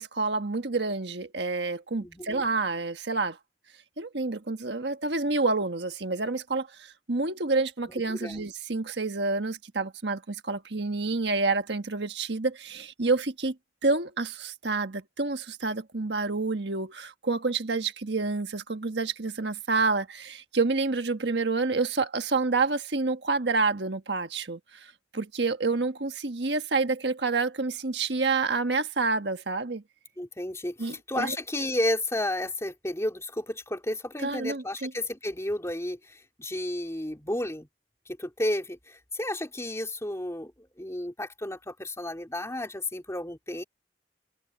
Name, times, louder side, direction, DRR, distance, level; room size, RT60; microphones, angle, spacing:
voice 1, 0.0-3.4 4.0-13.5 13.8-29.8 30.8-31.3 34.2-34.9, right 3 dB, 70° right, 1.5 m, -28 dB
voice 2, 2.0-2.4 8.1-8.4 30.2-37.7 38.1-43.6, left 1 dB, 15° left, 3.2 m, -32 dB
head